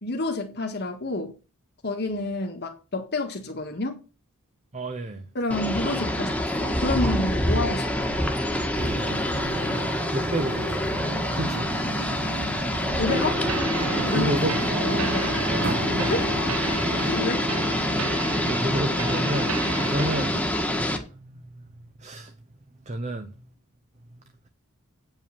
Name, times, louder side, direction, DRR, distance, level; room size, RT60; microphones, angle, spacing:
voice 1, 0.0-1.3 1.8-4.0 5.4-8.3 13.0-13.5 14.1-14.4 14.8-15.4 16.0-16.2 17.1-17.5, left 2 dB, 50° left, 1.8 m, -29 dB
voice 2, 4.7-5.2 9.1-9.4 10.1-10.8 11.3-11.8 14.1-14.5 15.5-16.1 18.2-20.4 20.7-21.6 22.0-22.3 22.9-23.3, right 1 dB, 35° right, 0.9 m, -31 dB
sound 1, 5.5-21.0, left 1 dB, 5° left, 1.5 m, -26 dB
sound 2, 8.7-17.2, right 2 dB, 50° right, 1.9 m, -35 dB
sound 3, 13.1-20.4, right 2 dB, 75° right, 1.0 m, -31 dB
9.0 x 5.6 x 7.1 m
head